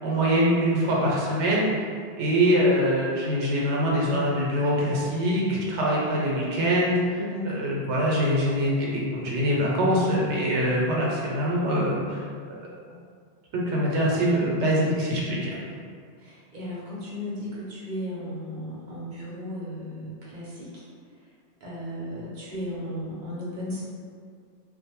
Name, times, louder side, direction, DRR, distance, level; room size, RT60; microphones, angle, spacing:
voice 1, 0.0-1.7 2.2-12.2 13.5-15.6, equal, 80° right, -4 dB, 0.9 m, -24 dB
voice 2, 7.2-7.6 15.2-15.7 16.2-20.8 21.6-23.9, equal, 50° right, -7 dB, 0.7 m, -35 dB
2.5 x 2.1 x 2.8 m, 2.1 s
omnidirectional pair, 1.2 m